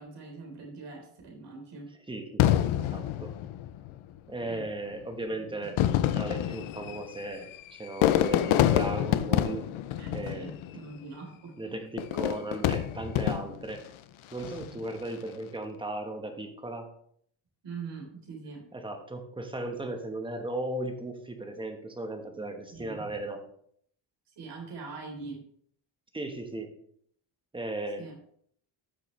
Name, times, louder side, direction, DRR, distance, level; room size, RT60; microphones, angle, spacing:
voice 1, 0.0-1.9 4.4-4.7 10.0-11.9 17.6-18.6 22.7-23.2 24.4-25.4 28.0-28.1, right 4 dB, 60° right, 0 dB, 3.7 m, -43 dB
voice 2, 2.1-3.3 4.3-5.8 6.1-9.7 10.1-10.5 11.6-13.8 14.3-16.9 18.7-23.4 26.1-26.7 27.5-28.0, right 2 dB, 10° right, 5 dB, 1.2 m, -36 dB
Fireworks, 2.4-4.0 4.9-5.0 5.6-10.9 12.0-13.8 14.3-14.8, left 12 dB, 80° left, 0.7 m, -27 dB
13.5 x 6.5 x 3.2 m, 0.65 s
cardioid pair, 145°, 48 cm